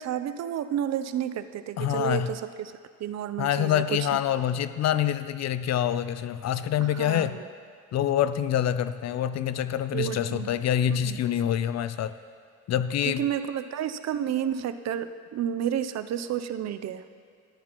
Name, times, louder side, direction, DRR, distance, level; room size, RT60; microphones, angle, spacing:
voice 1, 0.0-2.7 3.0-4.1 6.8-7.4 9.9-10.5 10.9-11.2 13.0-17.0, right 9 dB, 60° right, 11 dB, 0.6 m, -31 dB
voice 2, 1.8-2.3 3.4-7.4 7.9-12.1 12.7-13.2, left 10 dB, 60° left, 13 dB, 0.5 m, -26 dB
13.5 x 12.0 x 3.0 m, 2.3 s
cardioid pair, 90°, 30 cm